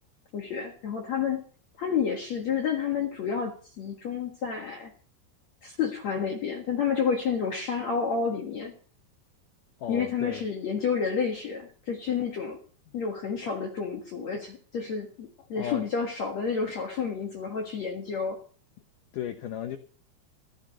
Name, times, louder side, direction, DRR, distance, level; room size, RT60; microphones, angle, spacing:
voice 1, 0.3-1.4 1.8-4.9 5.6-8.7 9.9-12.6 12.9-18.4, left 6 dB, 60° left, 1.9 m, -30 dB
voice 2, 9.8-10.4 12.9-13.0 15.4-15.9 19.1-19.8, left 9 dB, 85° left, 1.8 m, -35 dB
18.5 x 15.0 x 3.1 m
omnidirectional pair, 5.3 m